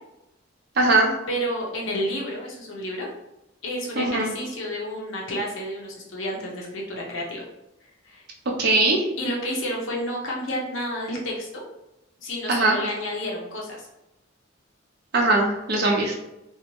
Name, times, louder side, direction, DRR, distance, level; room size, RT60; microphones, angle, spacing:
voice 1, 0.8-1.2 4.0-4.3 8.6-9.0 12.5-12.8 15.1-16.1, right 2 dB, 55° right, -1 dB, 0.6 m, -20 dB
voice 2, 1.3-3.1 3.6-7.4 8.0-8.2 9.2-11.6 12.2-13.9 15.8-15.9, equal, 80° left, -2 dB, 0.7 m, -30 dB
2.6 x 2.0 x 2.9 m, 0.90 s
head